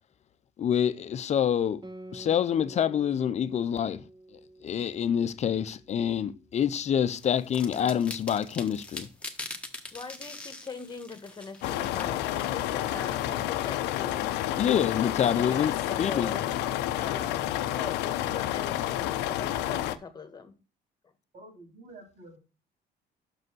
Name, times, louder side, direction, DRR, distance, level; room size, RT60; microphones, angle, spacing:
voice 1, 0.6-1.8 2.1-4.0 4.6-9.1 14.6-15.7 16.0-16.3, left 9 dB, 40° left, 0.6 m, -26 dB
Guitar, 1.8-6.8, right 1 dB, 25° right, 0.9 m, -49 dB
sound 1, 7.2-14.1, left 2 dB, 5° left, 1.4 m, -43 dB
voice 2, 9.9-14.4 15.0-20.5, left 4 dB, 25° left, 1.5 m, -42 dB
sound 2, 11.6-20.0, left 13 dB, 90° left, 0.5 m, -30 dB
voice 3, 21.3-22.4, right 2 dB, 55° right, 4.1 m, -49 dB
6.3 x 5.3 x 6.2 m
cardioid pair, 110°, 17 cm